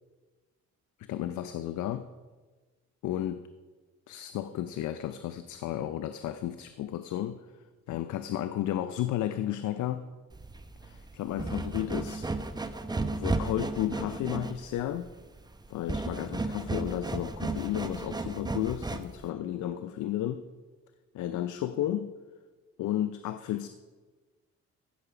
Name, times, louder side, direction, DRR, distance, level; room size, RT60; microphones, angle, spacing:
voice 1, 1.0-2.1 3.0-3.4 4.1-7.4 7.9-10.1 10.8-12.3 13.1-15.1 15.7-20.5 21.1-22.2 22.8-23.7, left 12 dB, 75° left, 11 dB, 0.6 m, -33 dB
sound 1, 10.3-19.3, right 3 dB, 15° right, 0.7 m, -34 dB
15.5 x 6.5 x 5.0 m, 1.3 s
cardioid pair, 90°, 30 cm